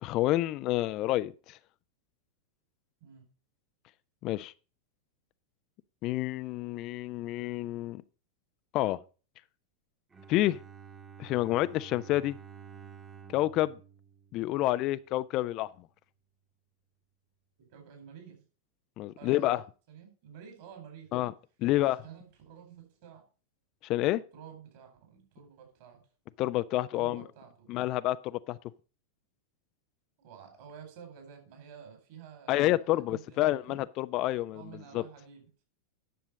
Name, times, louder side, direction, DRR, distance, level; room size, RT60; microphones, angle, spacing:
voice 1, 0.0-1.6 4.2-4.5 6.0-8.0 8.7-9.0 10.3-10.6 11.2-12.4 13.3-13.8 14.3-15.7 19.0-19.6 21.1-21.3 21.6-22.0 23.8-24.2 26.4-27.2 27.7-28.6 32.5-34.6 34.9-35.0, left 16 dB, 40° left, 0.4 m, -28 dB
Bowed string instrument, 10.1-15.1, right 7 dB, 15° right, 1.3 m, -51 dB
voice 2, 17.6-18.4 19.1-19.6 19.9-21.3 21.7-23.2 24.3-26.0 26.9-27.7 30.2-33.8 34.5-35.5, right 8 dB, 50° right, 4.2 m, -50 dB
10.0 x 6.7 x 5.0 m
figure-of-eight pair, 90°, 0 cm